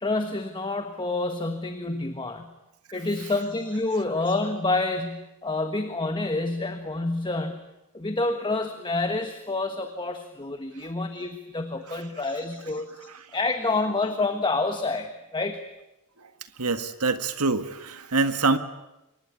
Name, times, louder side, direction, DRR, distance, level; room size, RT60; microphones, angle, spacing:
voice 1, 0.0-2.5 2.9-7.5 7.9-15.6, left 2 dB, 20° left, 7 dB, 1.4 m, -28 dB
voice 2, 16.6-18.6, right 3 dB, 85° right, 10 dB, 1.8 m, -25 dB
26.5 x 23.0 x 9.8 m, 0.95 s
head